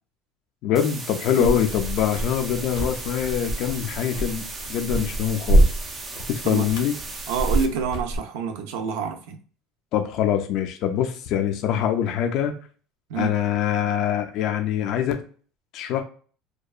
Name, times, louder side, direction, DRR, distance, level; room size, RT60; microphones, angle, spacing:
voice 1, 0.6-5.7 6.3-7.0 9.9-12.5 13.2-15.2 15.7-16.0, left 9 dB, 50° left, 0.3 m, -24 dB
sound 1, 0.8-7.7, right 3 dB, 20° right, 0.3 m, -37 dB
sound 2, 1.4-8.2, right 1 dB, 85° left, 0.7 m, -26 dB
voice 2, 7.3-9.4 13.1-13.4, right 6 dB, 85° right, 0.5 m, -28 dB
2.7 x 2.2 x 2.3 m
cardioid pair, 155°, 0 cm